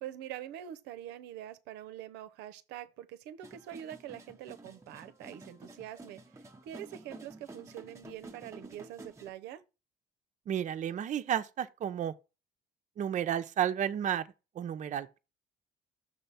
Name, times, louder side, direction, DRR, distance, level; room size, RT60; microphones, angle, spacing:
voice 1, 0.0-6.2 6.6-9.6, right 11 dB, 90° right, 0.7 m, -44 dB
sound 1, 3.4-9.3, right 2 dB, 15° right, 0.9 m, -51 dB
voice 2, 10.5-12.1 13.0-14.2 14.6-15.2, right 10 dB, 45° right, 0.6 m, -32 dB
6.6 x 3.3 x 5.5 m
cardioid pair, 110°, 17 cm